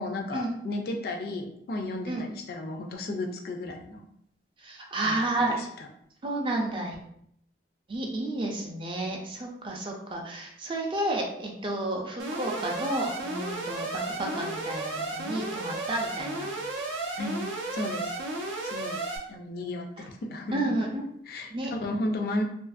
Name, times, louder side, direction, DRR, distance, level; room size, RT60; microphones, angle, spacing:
voice 1, 0.0-4.0 5.0-5.9 17.2-17.4 17.7-18.1 18.6-19.0 19.3-20.7 21.3-22.4, left 2 dB, 55° left, 4 dB, 0.3 m, -34 dB
voice 2, 4.6-5.6 6.2-7.0 7.9-16.5 20.5-21.0 21.5-21.7, right 1 dB, 25° right, 0 dB, 0.4 m, -31 dB
Alarm, 12.2-19.2, right 2 dB, 85° right, 0.5 m, -33 dB
2.7 x 2.4 x 2.3 m, 0.70 s
head